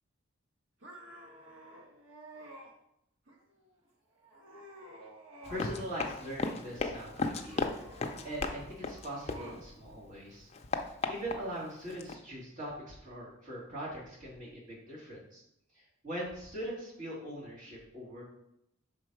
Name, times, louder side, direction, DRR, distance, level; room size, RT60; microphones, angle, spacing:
sound 1, 0.8-2.7 3.3-3.8 4.2-5.8 6.1-6.8 7.3-9.7, right 1 dB, 75° right, 1.4 m, -51 dB
Run, 5.4-9.9 10.3-12.2, left 3 dB, 30° left, 0.5 m, -36 dB
voice 1, 5.5-7.7 8.2-10.5 11.1-15.4 16.0-18.2, equal, 40° right, -6 dB, 2.3 m, -41 dB
6.0 x 4.1 x 4.7 m, 0.78 s
head